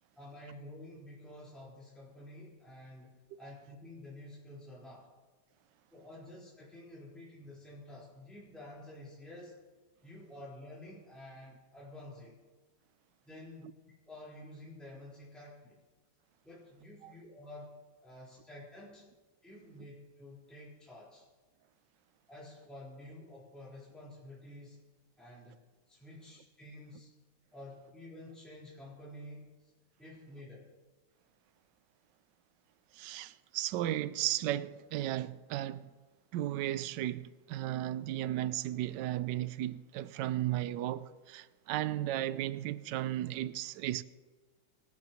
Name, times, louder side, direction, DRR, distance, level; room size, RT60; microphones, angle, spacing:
voice 1, 0.2-5.1 5.9-9.5 10.0-12.3 13.3-15.8 16.4-17.7 18.0-19.1 19.4-21.3 22.3-24.8 25.2-25.6 25.9-27.1 27.5-29.5 30.0-30.7, left 1 dB, ahead, 4.1 m, -50 dB
voice 2, 32.9-35.9 36.3-44.0, right 13 dB, 80° right, 1.0 m, -35 dB
25.5 x 12.0 x 3.0 m
omnidirectional pair, 2.4 m